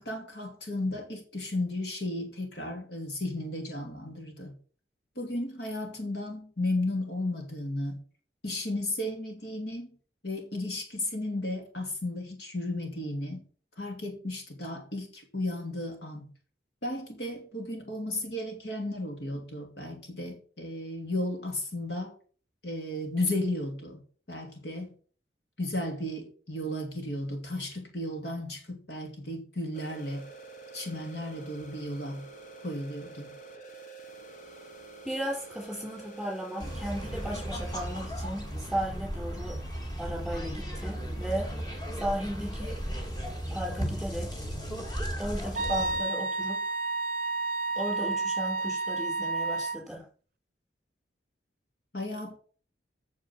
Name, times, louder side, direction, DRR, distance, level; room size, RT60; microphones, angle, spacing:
voice 1, 0.0-4.6 5.2-8.0 8.4-10.0 10.2-13.4 13.8-16.3 16.8-22.2 22.6-24.0 24.3-24.9 25.6-30.3 30.7-32.2 32.6-33.4 51.9-52.4, left 1 dB, 65° left, 2.6 m, -34 dB
sound 1, 29.7-38.1, right 3 dB, 45° left, 1.4 m, -48 dB
voice 2, 35.0-39.6 40.0-41.5 41.9-42.8 43.5-44.3 45.2-46.6 47.8-50.1, right 1 dB, ahead, 4.8 m, -35 dB
sound 2, 36.6-46.0, equal, 20° left, 2.2 m, -35 dB
Wind instrument woodwind instrument, 45.6-49.8, right 3 dB, 50° right, 0.6 m, -30 dB
9.0 x 6.7 x 7.2 m
head